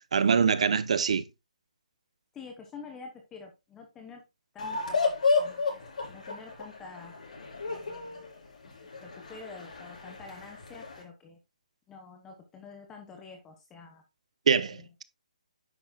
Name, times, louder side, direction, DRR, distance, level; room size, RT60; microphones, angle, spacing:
voice 1, 0.1-1.2 14.5-15.0, right 6 dB, 55° right, 0.8 m, -24 dB
voice 2, 2.3-4.2 4.5-5.0 5.4-5.8 6.1-7.1 7.7-8.3 8.6-8.7 9.0-11.4 11.9-14.0 14.7-14.8, left 4 dB, 10° left, 0.9 m, -47 dB
sound 1, 4.6-11.0, left 4 dB, 70° left, 4.3 m, -32 dB
9.8 x 7.0 x 2.3 m
hypercardioid pair, 175°, 4 cm